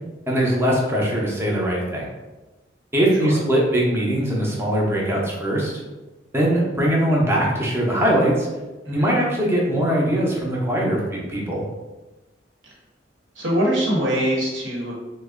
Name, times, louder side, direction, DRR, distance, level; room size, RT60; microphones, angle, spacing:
voice 1, 0.3-2.1 2.9-5.7 6.3-8.5 8.9-11.6, right 1 dB, 15° right, -3 dB, 0.6 m, -21 dB
voice 2, 13.4-14.9, equal, 90° right, -3 dB, 1.0 m, -22 dB
3.4 x 2.1 x 3.6 m, 1.1 s
head